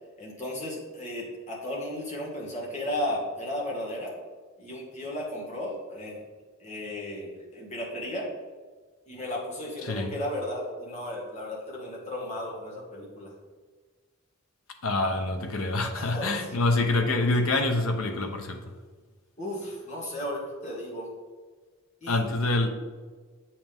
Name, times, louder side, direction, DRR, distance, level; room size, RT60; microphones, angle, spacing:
voice 1, 0.2-4.1 4.6-6.2 6.6-8.3 9.1-13.3 15.9-16.6 19.4-21.1 22.0-22.2, left 1 dB, 30° left, 1.8 m, -34 dB
voice 2, 9.8-10.1 14.8-18.6 22.1-22.7, left 2 dB, 75° left, 0.9 m, -26 dB
7.7 x 5.7 x 3.5 m
head